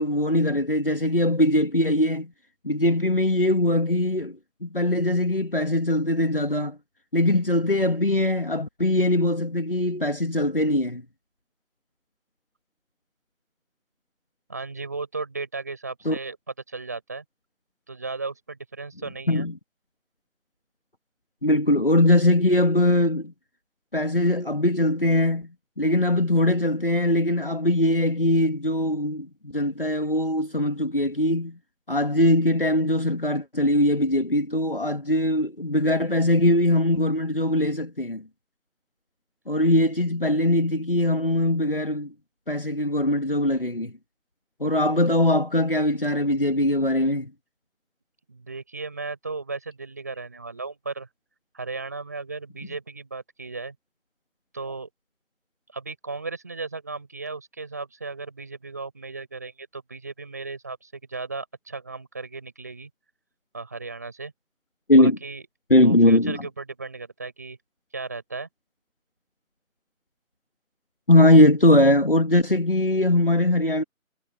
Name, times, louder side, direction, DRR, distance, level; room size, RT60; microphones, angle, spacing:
voice 1, 0.0-2.3 2.6-6.8 7.1-11.0 16.1-16.2 19.3-19.5 21.4-23.3 23.9-25.5 25.8-29.3 29.5-31.6 31.9-38.2 39.5-42.1 42.5-43.9 44.6-47.3 64.9-65.2 65.7-66.4 71.1-73.8, left 1 dB, 40° left, 2.4 m, -21 dB
voice 2, 14.5-17.2 17.9-19.5 48.3-51.1 51.5-53.8 54.5-54.9 55.7-62.9 63.5-64.3 65.0-65.4 65.8-67.6 67.9-68.5, right 3 dB, 10° right, 7.1 m, -35 dB
figure-of-eight pair, 180°, 42 cm